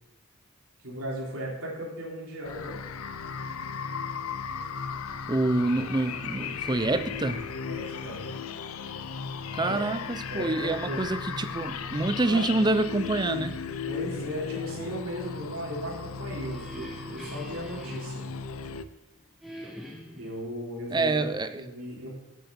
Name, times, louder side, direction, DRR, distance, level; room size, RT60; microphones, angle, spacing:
voice 1, 0.8-2.8 7.6-8.2 9.6-9.8 10.3-11.0 12.3-12.5 13.9-18.2 20.2-21.3 21.5-22.1, equal, 85° right, 3.4 m, -36 dB
sound 1, 2.5-18.8, left 6 dB, 85° left, 0.6 m, -36 dB
voice 2, 5.3-7.5 9.5-13.5 20.9-21.6, right 2 dB, 20° right, 0.5 m, -27 dB
sound 2, 16.0-19.0 19.4-20.4, right 1 dB, ahead, 1.7 m, -44 dB
8.2 x 8.1 x 6.8 m
head